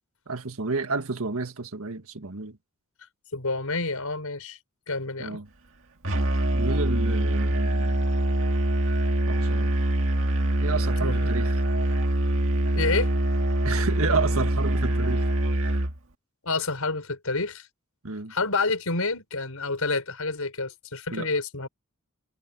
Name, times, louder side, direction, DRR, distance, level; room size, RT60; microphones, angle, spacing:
voice 1, 0.3-2.6 5.2-5.5 6.5-8.0 9.3-9.8 10.6-11.6 13.6-15.8 18.0-18.3 21.1-21.3, right 4 dB, 80° right, 1.7 m, -31 dB
voice 2, 3.3-4.6 4.9-5.4 11.0-11.3 12.8-13.1 16.4-17.7 18.3-21.7, left 3 dB, 90° left, 5.2 m, -28 dB
Musical instrument, 6.0-16.0, right 1 dB, 65° right, 2.0 m, -24 dB
head